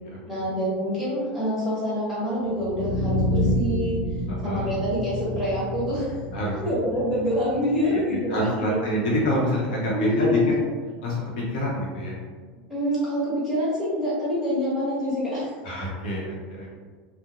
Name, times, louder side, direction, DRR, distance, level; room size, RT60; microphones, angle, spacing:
voice 1, 0.3-4.0 4.4-6.2 6.6-8.8 9.9-10.5 12.7-15.5, equal, 5° right, -10 dB, 1.0 m, -26 dB
sound 1, 2.4-8.4, equal, 40° left, 0.3 m, -29 dB
voice 2, 4.3-4.7 6.3-6.6 7.8-10.4 11.0-12.2 15.6-16.8, equal, 70° left, -4 dB, 0.8 m, -27 dB
2.4 x 2.0 x 2.9 m, 1.5 s
supercardioid pair, 165°, 5 cm